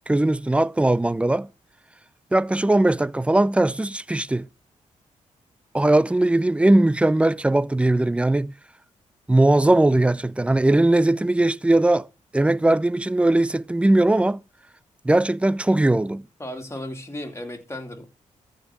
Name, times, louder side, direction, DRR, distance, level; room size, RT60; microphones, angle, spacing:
voice 1, 0.1-1.5 2.3-4.5 5.7-8.5 9.3-12.1 12.3-14.4 15.0-16.2, right 2 dB, 10° right, 0.5 m, -19 dB
voice 2, 16.4-18.1, left 1 dB, 20° left, 2.9 m, -34 dB
13.5 x 5.2 x 6.1 m
cardioid pair, 65°, 13 cm